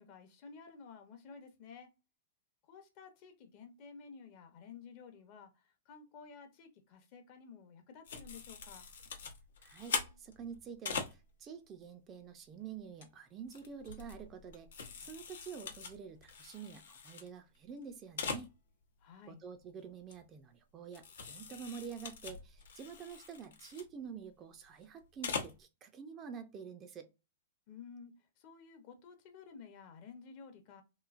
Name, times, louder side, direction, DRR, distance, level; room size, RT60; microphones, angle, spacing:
voice 1, 0.0-1.9 2.7-8.9 19.0-19.4 27.7-30.8, left 5 dB, 45° left, 0.7 m, -53 dB
sound 1, 8.0-11.1 12.8-13.0 13.5-17.3 17.5-17.6 17.8-17.9 18.2-18.5 20.1-20.2 20.9-23.8 25.0-25.6, left 5 dB, 80° left, 0.7 m, -42 dB
voice 2, 9.6-18.5 19.3-27.1, right 6 dB, 25° right, 0.4 m, -48 dB
3.0 x 2.6 x 2.4 m
hypercardioid pair, 140°, 0 cm